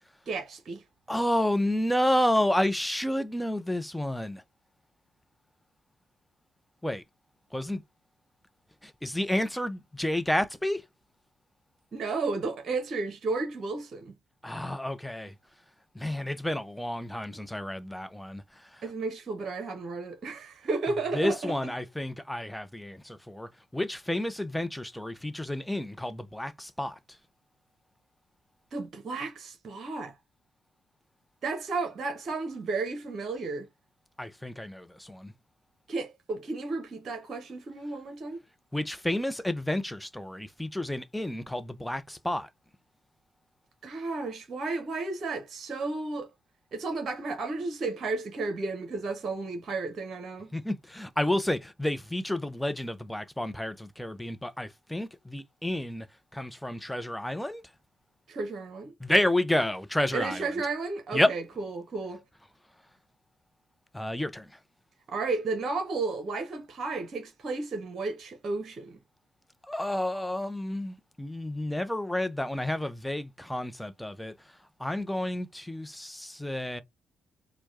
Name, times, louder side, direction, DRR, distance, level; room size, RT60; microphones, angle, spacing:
voice 1, 0.3-0.8 11.9-14.1 18.8-21.7 28.7-30.1 31.4-33.7 35.9-38.4 43.8-46.3 46.7-50.5 58.3-58.9 60.1-62.2 65.1-69.0, right 3 dB, 50° right, 1.0 m, -33 dB
voice 2, 1.1-4.4 6.8-7.0 7.5-7.8 8.8-10.8 14.4-15.3 15.9-18.8 21.1-27.0 34.2-35.3 38.7-42.5 50.5-56.1 56.3-57.6 59.0-60.5 61.1-61.3 63.9-64.5 69.7-74.3 74.8-76.8, left 1 dB, 5° left, 0.7 m, -30 dB
4.5 x 2.3 x 2.7 m
hypercardioid pair, 45°, 0 cm